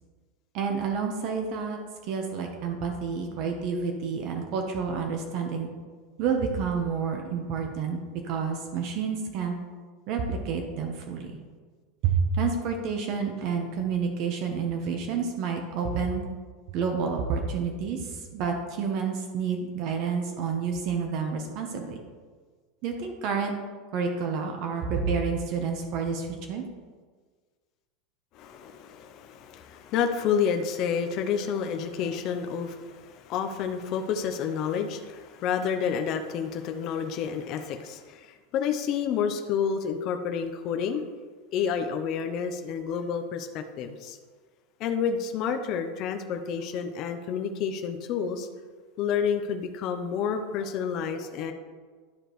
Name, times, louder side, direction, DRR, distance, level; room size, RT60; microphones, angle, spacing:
voice 1, 0.5-5.7 6.2-9.5 10.1-11.4 12.0-16.3 16.7-22.0 22.8-23.5 23.9-26.6, right 5 dB, 35° right, 3 dB, 0.8 m, -29 dB
voice 2, 28.3-41.0 41.5-44.2 44.8-48.5 49.0-51.5, left 7 dB, 35° left, 5 dB, 0.5 m, -29 dB
11.0 x 5.0 x 3.0 m, 1.5 s
supercardioid pair, 180°, 0 cm